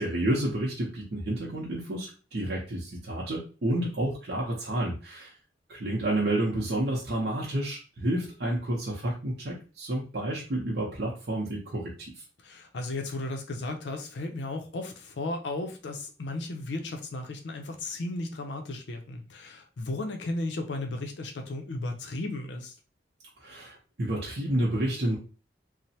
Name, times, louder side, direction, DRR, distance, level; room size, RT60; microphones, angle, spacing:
voice 1, 0.0-5.3 5.7-12.1 23.4-25.2, right 1 dB, 60° right, -4 dB, 0.7 m, -30 dB
voice 2, 12.4-22.7, left 2 dB, 85° left, 4 dB, 0.5 m, -35 dB
3.1 x 2.0 x 2.7 m, 0.34 s
head